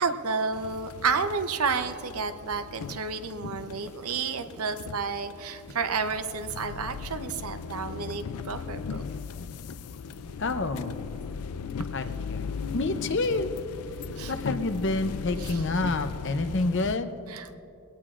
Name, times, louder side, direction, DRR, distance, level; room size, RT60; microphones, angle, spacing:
voice 1, 0.0-9.0 10.2-10.3 14.1-14.4 15.4-15.6 17.3-17.6, right 5 dB, 80° right, 8 dB, 0.8 m, -31 dB
sound 1, 0.5-17.0, left 5 dB, 90° left, 0.4 m, -38 dB
voice 2, 10.4-10.9 11.9-12.5 12.7-13.5 14.3-17.1, left 2 dB, 55° left, 9 dB, 0.7 m, -28 dB
22.0 x 17.5 x 2.5 m, 2.6 s
head